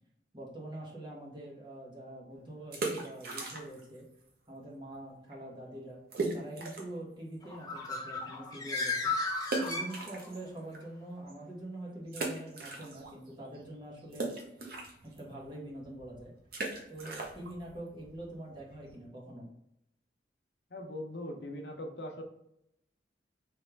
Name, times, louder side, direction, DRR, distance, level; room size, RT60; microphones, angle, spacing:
voice 1, 0.3-4.1 4.5-6.0 6.3-9.1 9.6-14.3 15.0-16.3 16.9-19.5, right 1 dB, 25° right, -3 dB, 1.1 m, -45 dB
sound 1, 2.6-4.0 4.2-4.3 4.9-5.0 5.3-5.4 6.1-7.0 7.5-7.6 9.4-10.8 11.3-11.4 12.1-13.3 13.5-19.1, right 3 dB, 60° right, 0.8 m, -39 dB
Bird, 7.4-10.5, left 3 dB, 20° left, 0.7 m, -35 dB
voice 2, 20.7-22.2, left 1 dB, 70° left, 3 dB, 0.7 m, -40 dB
3.3 x 3.2 x 3.4 m, 0.77 s
head